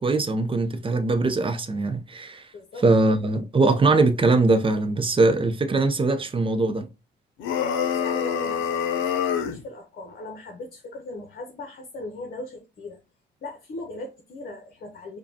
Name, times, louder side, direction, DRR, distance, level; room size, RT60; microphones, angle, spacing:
voice 1, 0.0-2.5 2.8-6.9, right 3 dB, 25° right, 0.7 m, -21 dB
voice 2, 2.5-2.8 7.8-13.0 13.4-15.2, left 2 dB, 50° left, 0.9 m, -38 dB
sound 1, 7.4-9.6, left 8 dB, 80° left, 0.6 m, -26 dB
4.9 x 2.3 x 2.8 m
cardioid pair, 90°, 20 cm